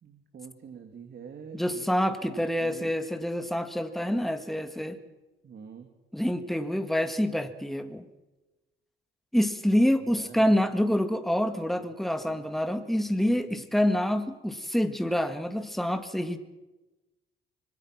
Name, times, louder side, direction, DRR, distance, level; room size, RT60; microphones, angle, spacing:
voice 1, 0.0-1.9 2.2-2.9 4.8-5.1 5.4-5.9 9.9-10.6 11.7-11.9 12.3-12.5 13.1-13.6, right 6 dB, 55° right, 5 dB, 2.6 m, -46 dB
voice 2, 1.5-5.0 6.1-8.1 9.3-16.4, equal, ahead, 8 dB, 1.9 m, -27 dB
25.5 x 21.0 x 6.1 m, 1.1 s
cardioid pair, 90°, 20 cm